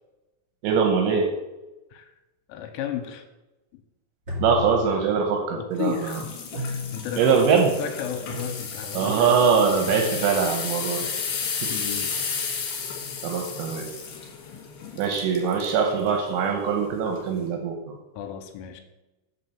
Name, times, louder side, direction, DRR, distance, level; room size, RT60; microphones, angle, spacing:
voice 1, 0.6-1.3 4.4-6.2 7.2-7.7 8.9-11.1 13.2-13.9 15.0-18.0, right 6 dB, 80° right, 3 dB, 2.7 m, -22 dB
voice 2, 2.5-3.3 5.5-9.3 11.0-11.1 11.7-12.1 18.2-18.8, left 9 dB, 85° left, 6 dB, 3.1 m, -34 dB
sound 1, 4.2-5.5 6.5-7.3 8.3-8.9 9.9-10.5, left 3 dB, 25° right, 1.8 m, -35 dB
sound 2, 5.9-15.8 16.3-16.5 17.1-17.2, left 5 dB, 60° left, 2.7 m, -33 dB
8.2 x 4.5 x 6.9 m, 1.0 s
omnidirectional pair, 5.9 m